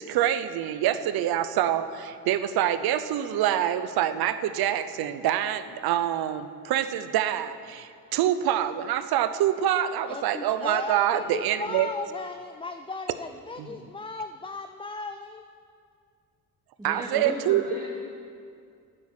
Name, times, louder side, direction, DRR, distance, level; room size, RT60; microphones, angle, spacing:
voice 1, 0.0-11.9 13.6-13.7 16.8-17.6, right 11 dB, 80° right, 12 dB, 0.7 m, -26 dB
voice 2, 10.1-15.4, left 3 dB, 15° left, 7 dB, 0.5 m, -36 dB
voice 3, 16.8-18.0, right 1 dB, 10° right, -8 dB, 2.7 m, -36 dB
9.8 x 9.2 x 7.4 m, 2.3 s
cardioid pair, 75°, 37 cm